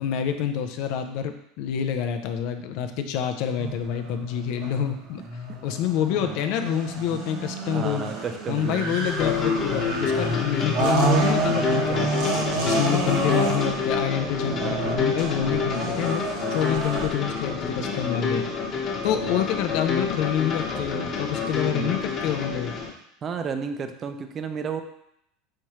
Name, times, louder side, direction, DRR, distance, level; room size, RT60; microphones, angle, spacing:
voice 1, 0.0-5.2 5.6-8.1 8.5-12.1 12.6-18.5 19.0-22.8, left 9 dB, 65° left, 7 dB, 0.4 m, -27 dB
sound 1, 3.6-17.1, right 3 dB, 65° right, 1.1 m, -29 dB
voice 2, 7.7-9.0 11.4-11.9 12.4-12.8 14.4-15.0 15.4-15.7 19.2-19.4 21.7-21.9 23.2-24.8, right 6 dB, 35° right, 7 dB, 0.5 m, -33 dB
sound 2, 9.0-22.9, left 5 dB, 40° left, 1.1 m, -28 dB
4.4 x 3.5 x 3.1 m, 0.74 s
supercardioid pair, 100°, 0 cm